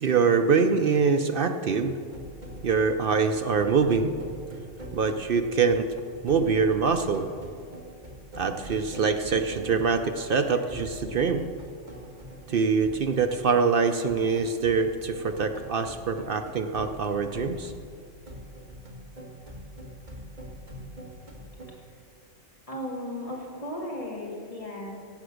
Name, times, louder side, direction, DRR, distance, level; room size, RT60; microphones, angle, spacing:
voice 1, 0.0-2.0 2.6-4.1 4.9-5.9 6.2-7.3 8.4-11.5 12.5-17.7, right 5 dB, 55° right, 7 dB, 0.7 m, -24 dB
sound 1, 2.1-21.7, equal, 35° right, 1.8 m, -44 dB
voice 2, 22.7-24.9, left 1 dB, 25° left, -3 dB, 2.7 m, -35 dB
16.5 x 7.8 x 6.4 m, 2.2 s
omnidirectional pair, 1.3 m